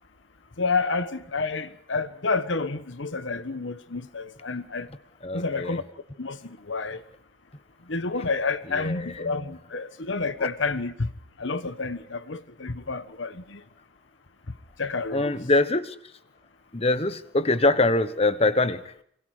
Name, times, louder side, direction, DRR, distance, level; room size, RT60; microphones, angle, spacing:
voice 1, 0.6-4.9 5.3-5.8 6.2-7.0 7.9-11.1 11.4-13.6 14.8-15.4, left 4 dB, 70° left, 1.2 m, -29 dB
voice 2, 5.2-5.8 8.8-9.5 15.1-15.9 16.7-18.8, left 2 dB, 30° left, 1.2 m, -24 dB
26.5 x 25.0 x 5.0 m
head